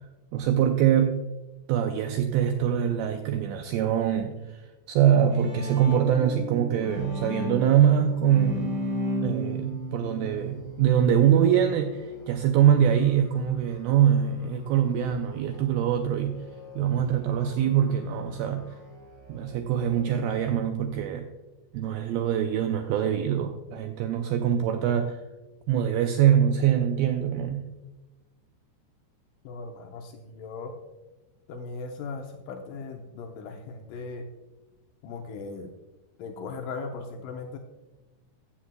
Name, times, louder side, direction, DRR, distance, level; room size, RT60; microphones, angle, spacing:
voice 1, 0.3-1.2 1.7-8.8 9.2-16.4 16.8-18.7 19.3-21.3 21.7-25.2 25.7-27.7, right 9 dB, 85° right, 6 dB, 2.1 m, -24 dB
Bowed string instrument, 5.0-11.1, equal, 40° right, 2.8 m, -34 dB
Musical instrument, 6.9-20.4, left 2 dB, 45° left, 3.3 m, -50 dB
voice 2, 29.4-30.7 31.5-34.3 35.0-35.7 36.2-37.6, left 4 dB, 90° left, 3 dB, 1.8 m, -38 dB
14.5 x 8.5 x 2.2 m, 1.1 s
omnidirectional pair, 4.8 m